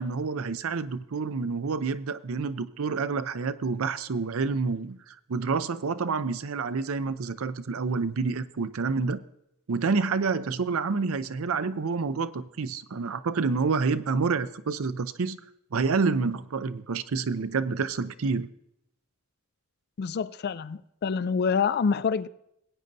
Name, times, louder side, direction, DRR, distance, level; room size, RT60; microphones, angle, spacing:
voice 1, 0.0-9.2 9.7-15.4 15.7-18.5, right 4 dB, 75° right, 13 dB, 0.5 m, -28 dB
voice 2, 20.0-22.3, left 5 dB, 45° left, 16 dB, 0.3 m, -26 dB
19.0 x 8.8 x 2.7 m, 0.79 s
head